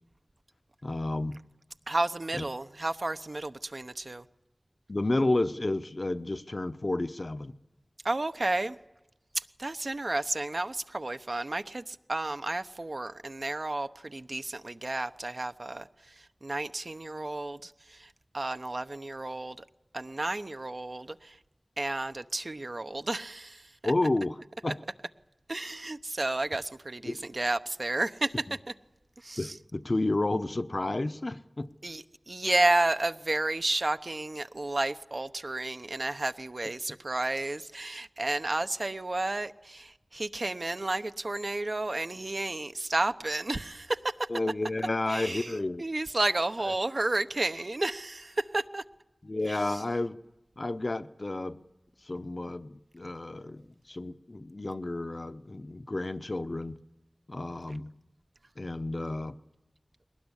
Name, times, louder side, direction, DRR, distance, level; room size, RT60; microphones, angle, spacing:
voice 1, 0.8-1.4 2.4-2.5 4.9-7.6 23.8-24.4 24.6-24.8 27.1-27.2 29.4-31.7 44.3-45.8 49.3-50.2 50.6-51.6 52.0-56.8 57.3-57.9 58.6-59.4, left 2 dB, 55° left, 0.9 m, -31 dB
voice 2, 1.9-4.3 8.0-8.8 9.3-19.7 19.9-21.4 21.8-23.9 25.5-28.3 28.7-28.8 29.2-29.6 31.8-44.3 45.1-48.8 49.5-49.8 57.7-57.8, right 2 dB, 60° right, 0.9 m, -32 dB
21.5 x 19.0 x 9.9 m
wide cardioid pair, 50°, 0 cm